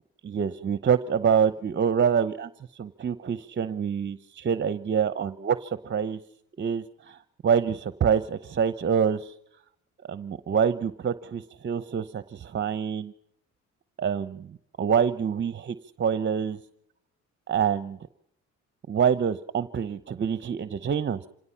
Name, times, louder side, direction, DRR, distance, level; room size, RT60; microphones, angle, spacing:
voice 1, 0.2-2.5 2.8-6.2 6.6-7.2 7.4-9.3 10.1-13.1 14.0-16.6 17.5-18.0 18.9-21.3, right 7 dB, 40° right, 14 dB, 0.8 m, -26 dB
26.5 x 17.5 x 5.7 m, 0.72 s
cardioid pair, 90°, 30 cm